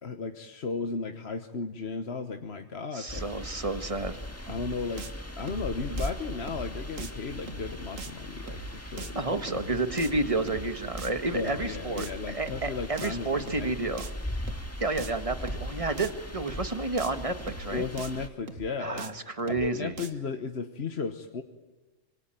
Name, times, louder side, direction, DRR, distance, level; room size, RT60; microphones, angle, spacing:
voice 1, 0.0-3.2 4.5-5.1 5.4-9.2 11.3-13.7 17.7-19.0 19.4-21.4, left 4 dB, 55° left, 6 dB, 1.4 m, -35 dB
voice 2, 2.9-4.2 9.1-14.1 14.8-17.9 18.8-19.9, right 2 dB, 25° right, 9 dB, 1.6 m, -30 dB
sound 1, 3.1-18.3, left 1 dB, 10° left, 1.8 m, -39 dB
sound 2, 4.5-4.7 5.0-5.1 5.4-5.7 6.0-6.1 6.5-6.7 7.0-7.1 7.4-7.7 8.0-8.1 8.5-8.7 9.0-9.1 9.4-9.7 10.0-10.1 10.5-10.7 11.0-11.1 11.4-11.7 12.0-12.1 12.5-12.7 13.0-13.1 13.4-13.7 14.0-14.1 14.5-14.7 15.0-15.1 15.4-15.7 16.0-16.1 16.5-16.7 17.0-17.1 17.4-17.7 18.0-18.1 18.5-18.7 19.0-19.1 19.4-19.7 20.0-20.1, right 4 dB, 85° right, 2.0 m, -41 dB
26.0 x 25.0 x 9.1 m, 1.2 s
omnidirectional pair, 1.3 m